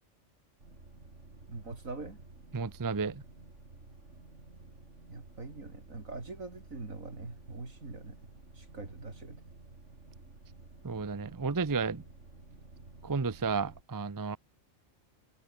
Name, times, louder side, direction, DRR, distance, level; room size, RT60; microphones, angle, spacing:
sound 1, 0.6-13.8, right 2 dB, 60° right, 4.4 m, -53 dB
voice 1, 1.5-2.2 5.1-9.6, right 3 dB, 80° right, 4.1 m, -44 dB
voice 2, 2.5-3.2 10.8-12.0 13.0-14.4, right 4 dB, 20° right, 0.6 m, -32 dB
omnidirectional pair, 1.4 m